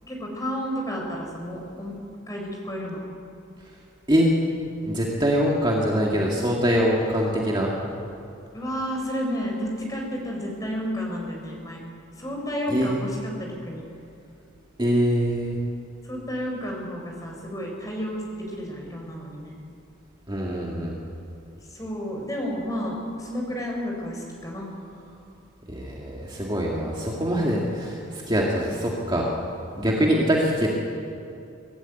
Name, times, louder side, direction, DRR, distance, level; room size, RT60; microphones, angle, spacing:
voice 1, 0.0-2.0 2.3-3.0 8.5-11.8 12.2-13.8 16.0-19.5 21.7-24.7 29.7-30.4, equal, 15° left, 0 dB, 4.3 m, -31 dB
voice 2, 4.8-7.7 12.7-12.9 14.8-15.6 20.3-21.0 25.7-29.3 29.8-30.7, equal, 20° right, -3 dB, 2.0 m, -23 dB
22.5 x 13.0 x 9.0 m, 2.6 s
head